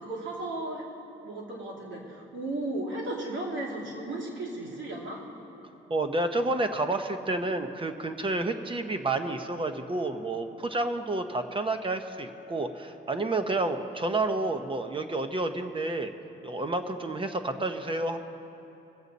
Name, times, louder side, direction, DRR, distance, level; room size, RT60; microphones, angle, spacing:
voice 1, 0.0-0.8 1.2-5.2, right 2 dB, 70° right, -3 dB, 2.8 m, -35 dB
voice 2, 5.9-16.1 16.4-18.2, right 2 dB, 25° right, 7 dB, 0.9 m, -30 dB
22.0 x 8.0 x 4.1 m, 2.9 s
cardioid pair, 90°, 20 cm